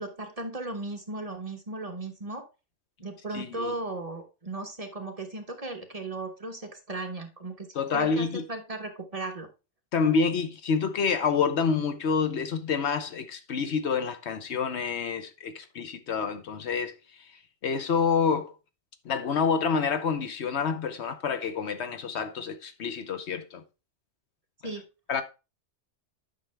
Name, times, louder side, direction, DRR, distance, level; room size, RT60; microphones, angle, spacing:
voice 1, 0.0-2.4 3.0-9.5 24.6-24.8, right 2 dB, 30° right, 1.3 m, -36 dB
voice 2, 3.3-3.7 7.7-8.4 9.9-16.9 17.6-18.5 19.0-23.6 25.1-25.2, left 5 dB, 70° left, 1.1 m, -28 dB
9.3 x 5.9 x 3.3 m
omnidirectional pair, 1.2 m